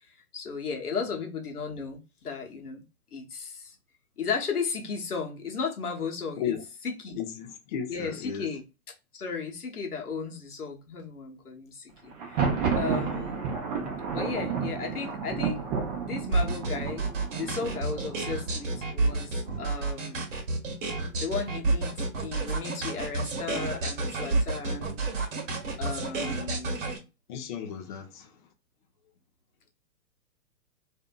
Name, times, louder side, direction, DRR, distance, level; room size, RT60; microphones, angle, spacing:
voice 1, 0.3-2.8 3.1-3.7 4.2-6.5 6.8-7.2 7.9-8.6 9.1-13.4 14.1-15.6 16.0-20.3 21.2-25.0 25.8-26.9, left 5 dB, 80° left, 1.1 m, -35 dB
voice 2, 7.2-8.5 27.3-28.3, left 8 dB, 35° left, 0.5 m, -34 dB
Thunder, 12.1-19.9, right 6 dB, 25° right, 0.6 m, -32 dB
sound 1, 16.3-27.0, right 3 dB, 60° right, 1.1 m, -29 dB
2.6 x 2.6 x 2.2 m
figure-of-eight pair, 120°, 44 cm